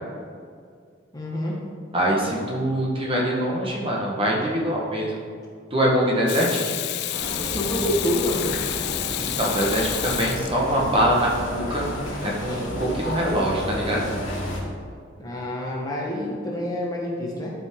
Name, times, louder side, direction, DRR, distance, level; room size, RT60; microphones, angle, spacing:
voice 1, 1.1-1.5 7.3-8.7 12.5-12.6 15.2-17.5, left 1 dB, 20° left, -3 dB, 1.2 m, -27 dB
voice 2, 1.9-5.2 5.7-6.7 9.2-11.9 12.2-14.1, equal, 25° right, -3 dB, 1.2 m, -23 dB
Water tap faucet / Sink (filling or washing), 6.3-11.0 13.5-13.6, left 14 dB, 55° left, 0.3 m, -30 dB
sound 1, 7.1-14.6, left 1 dB, 70° left, 2.3 m, -32 dB
11.5 x 5.2 x 3.7 m, 2.1 s
head